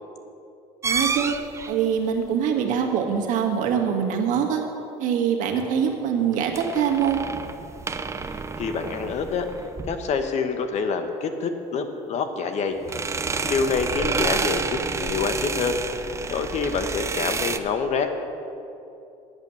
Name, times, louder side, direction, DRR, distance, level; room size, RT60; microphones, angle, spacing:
sound 1, 0.8-1.8 6.3-10.1 12.8-17.6, right 4 dB, 20° right, 0.5 m, -29 dB
voice 1, 0.8-1.3 1.7-4.6 5.0-7.2, right 7 dB, 65° right, 2 dB, 1.6 m, -23 dB
voice 2, 8.2-9.5 9.9-15.8 16.3-18.1, left 5 dB, 55° left, 7 dB, 1.1 m, -27 dB
10.5 x 8.0 x 6.9 m, 2.7 s
cardioid pair, 105°, 14 cm